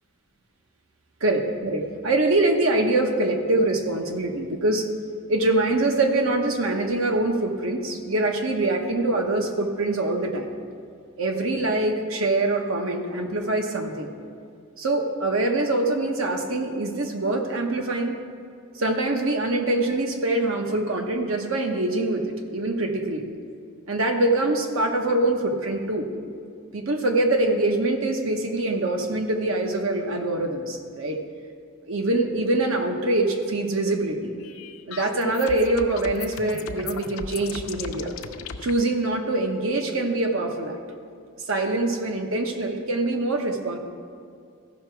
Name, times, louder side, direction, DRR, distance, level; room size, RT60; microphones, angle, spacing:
voice 1, 1.2-4.9 5.3-10.5 11.2-14.1 14.8-18.2 18.7-23.3 23.9-26.1 26.7-31.2 31.9-34.3 34.9-38.1 38.6-40.8 41.5-43.8, right 2 dB, 80° right, 3 dB, 1.1 m, -24 dB
sound 1, 34.4-38.7, left 5 dB, 80° left, 0.6 m, -37 dB
15.0 x 5.9 x 4.6 m, 2.3 s
head